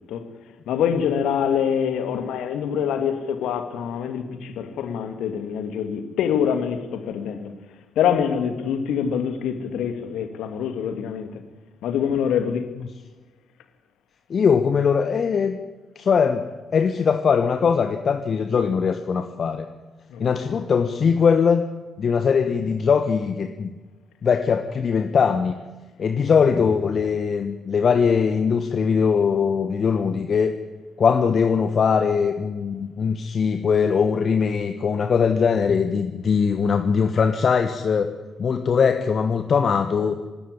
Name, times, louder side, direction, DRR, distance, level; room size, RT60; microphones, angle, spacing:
voice 1, 0.7-7.5 8.0-11.4 11.8-12.7 20.1-20.2, left 8 dB, 65° left, 2.4 m, -25 dB
voice 2, 14.3-15.6 15.9-16.4 16.7-19.7 20.2-21.6 22.0-23.7 24.2-25.6 26.0-30.5 31.0-38.1 38.4-40.2, left 6 dB, 50° left, 1.3 m, -21 dB
25.5 x 13.0 x 10.0 m
figure-of-eight pair, 40°, 0 cm